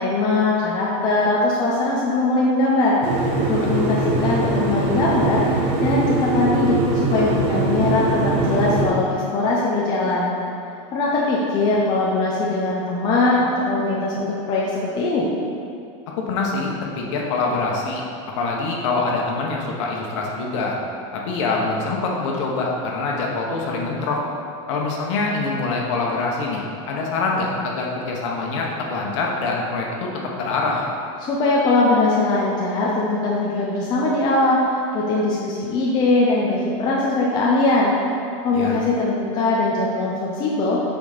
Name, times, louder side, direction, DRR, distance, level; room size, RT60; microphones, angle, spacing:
voice 1, 0.0-3.0 3.5-6.8 7.1-10.3 10.9-15.3 31.2-34.6 34.9-37.9 38.4-40.8, left 2 dB, 25° left, -4 dB, 0.7 m, -21 dB
sound 1, 3.0-8.9, right 2 dB, 35° right, 1.0 m, -22 dB
voice 2, 16.1-18.0 18.4-20.8 21.1-24.2 24.7-30.1 30.4-30.8 38.5-38.8, left 3 dB, 65° left, -1 dB, 1.4 m, -24 dB
6.2 x 5.2 x 5.2 m, 2.5 s
supercardioid pair, 170°, 17 cm